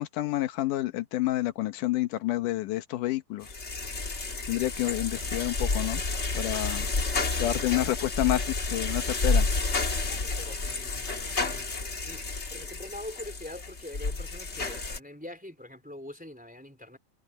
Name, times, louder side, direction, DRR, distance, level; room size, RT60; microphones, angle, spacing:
voice 1, 0.0-3.5 4.5-6.0 6.3-6.9 7.4-9.5, left 15 dB, 85° left, 2.5 m, -29 dB
sound 1, 3.4-15.0, left 3 dB, 25° left, 1.8 m, -30 dB
voice 2, 10.1-11.7 12.0-17.0, left 1 dB, 5° right, 3.2 m, -44 dB
omnidirectional pair, 3.6 m